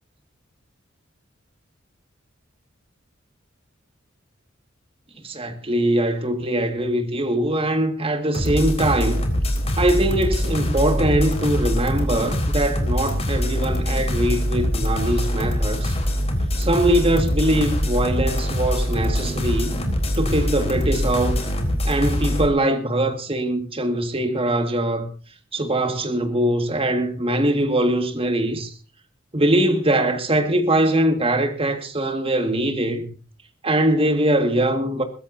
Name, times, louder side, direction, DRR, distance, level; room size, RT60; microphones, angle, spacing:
voice 1, 5.2-9.3 9.8-15.9 16.6-19.8 20.2-21.4 21.8-25.1 25.5-28.7 29.3-33.1 33.6-35.0, right 1 dB, 30° right, 1.9 m, -22 dB
sound 1, 8.3-22.5, equal, 30° left, 3.8 m, -23 dB
22.0 x 16.0 x 2.7 m
head